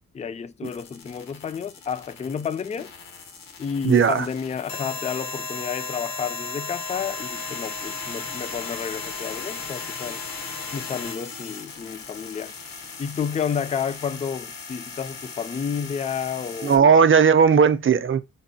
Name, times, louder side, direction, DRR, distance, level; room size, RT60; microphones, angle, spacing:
voice 1, 0.1-2.9 3.6-10.2 10.7-12.5 13.0-17.0, left 7 dB, 20° left, 0.3 m, -31 dB
sound 1, 0.6-16.8, left 4 dB, 80° left, 0.9 m, -36 dB
voice 2, 3.8-4.3 16.6-18.2, right 6 dB, 40° right, 0.5 m, -16 dB
5.2 x 2.0 x 2.7 m
cardioid pair, 60°, 34 cm